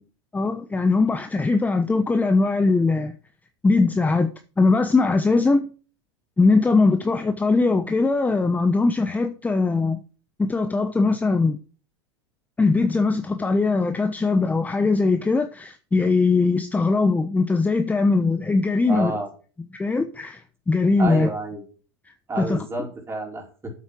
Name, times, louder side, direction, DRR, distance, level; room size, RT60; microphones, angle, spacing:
voice 1, 0.3-3.1 3.6-4.3 4.6-5.7 6.4-10.0 10.4-11.6 12.6-19.1 19.8-20.4 20.7-21.3 22.4-22.7, left 3 dB, 10° left, 0.9 m, -20 dB
voice 2, 18.9-19.3 21.0-21.6 22.3-23.7, right 2 dB, 20° right, 4.5 m, -29 dB
8.5 x 8.0 x 6.1 m
hypercardioid pair, 105°, 13 cm